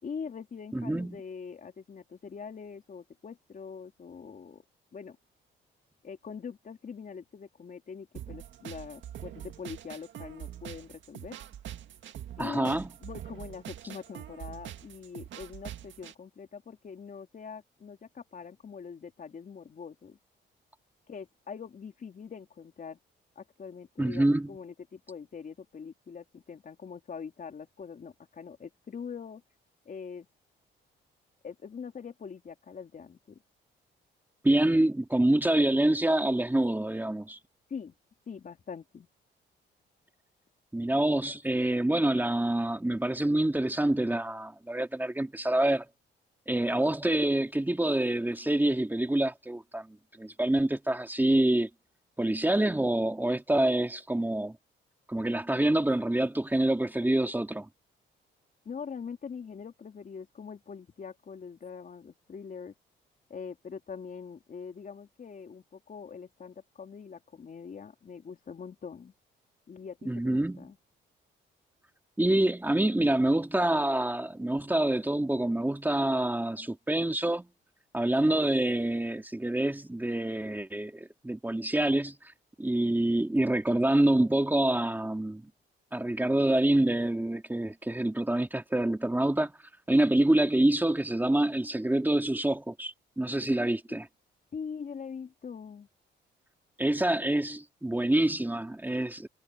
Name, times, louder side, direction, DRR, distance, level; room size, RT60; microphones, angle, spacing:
voice 1, 0.0-4.6 4.9-5.2 6.0-11.4 12.4-20.2 21.1-23.0 23.4-29.4 29.9-30.3 31.4-33.4 37.7-37.9 38.3-39.1 58.7-62.7 63.3-69.1 69.7-70.8 93.9-94.0 94.5-95.9, left 6 dB, 45° left, 3.6 m, -43 dB
voice 2, 0.7-1.2 12.4-12.9 24.0-24.5 34.4-37.4 40.7-45.8 46.5-51.7 52.2-54.6 55.1-57.7 70.1-70.7 72.2-77.5 77.9-82.2 82.6-85.4 85.9-89.5 89.9-94.1 96.8-99.3, right 1 dB, 10° right, 2.7 m, -26 dB
sound 1, 8.1-16.1, right 10 dB, 70° right, 1.9 m, -44 dB
cardioid pair, 90°, 20 cm